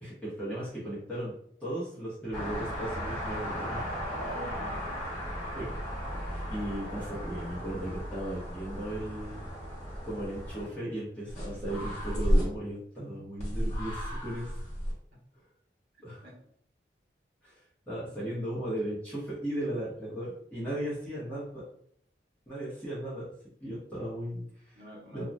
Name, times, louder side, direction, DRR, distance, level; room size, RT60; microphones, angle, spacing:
voice 1, 0.0-1.3 1.6-3.9 5.5-5.7 6.5-9.4 10.0-14.5 16.0-16.2 17.4-17.6 17.9-21.6 22.5-23.2 23.6-24.7 25.1-25.2, right 1 dB, 5° left, -10 dB, 0.9 m, -36 dB
sound 1, 2.3-10.7 11.3-12.4 13.4-14.9, equal, 40° left, 1.3 m, -34 dB
voice 2, 4.0-4.9 5.4-5.7 15.1-15.2 16.2-16.5 24.7-25.2, equal, 70° right, -4 dB, 0.9 m, -47 dB
2.6 x 2.2 x 3.3 m, 0.64 s
head